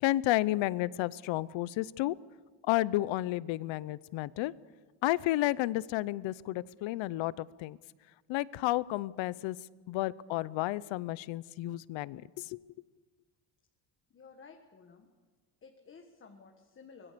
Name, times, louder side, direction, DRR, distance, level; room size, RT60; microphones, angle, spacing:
voice 1, 0.0-2.2 2.7-4.5 5.0-7.8 8.3-9.6 9.9-12.6, left 16 dB, 75° left, 20 dB, 0.8 m, -31 dB
voice 2, 14.1-15.1 15.6-17.1, left 5 dB, 25° left, 3 dB, 1.5 m, -54 dB
25.0 x 21.0 x 6.9 m, 1.4 s
cardioid pair, 175°, 46 cm